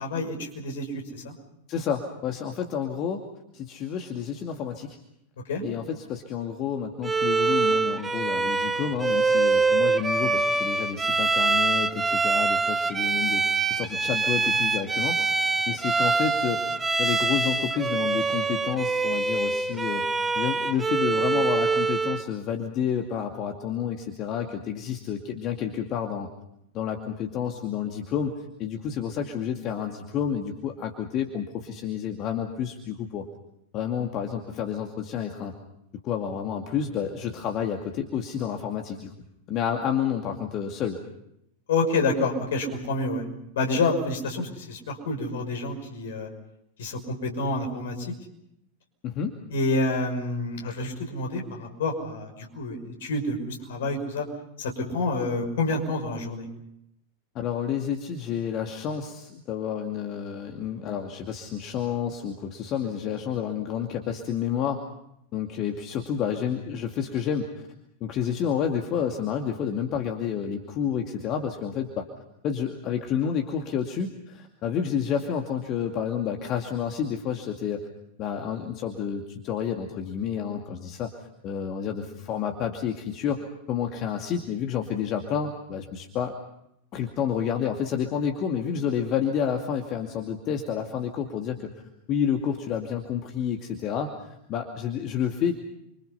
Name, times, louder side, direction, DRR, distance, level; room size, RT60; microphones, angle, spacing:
voice 1, 0.0-1.3 5.5-5.6 41.7-43.2 43.5-46.3 46.8-48.1 49.5-54.3 54.6-56.5, left 2 dB, 60° left, 3 dB, 5.9 m, -28 dB
voice 2, 1.7-3.2 3.5-5.0 5.6-13.4 13.7-16.7 17.0-20.1 20.4-26.3 26.7-28.3 28.6-33.2 33.7-35.5 36.0-39.1 39.5-41.0 49.0-49.4 57.3-64.8 65.3-67.5 68.0-72.1 72.4-77.9 78.2-86.3 86.9-91.7 92.1-95.5, left 8 dB, 35° left, 3 dB, 2.3 m, -30 dB
Bowed string instrument, 7.0-22.3, right 4 dB, 10° right, 1.0 m, -24 dB
29.5 x 25.0 x 5.7 m, 0.80 s
figure-of-eight pair, 90°, 0 cm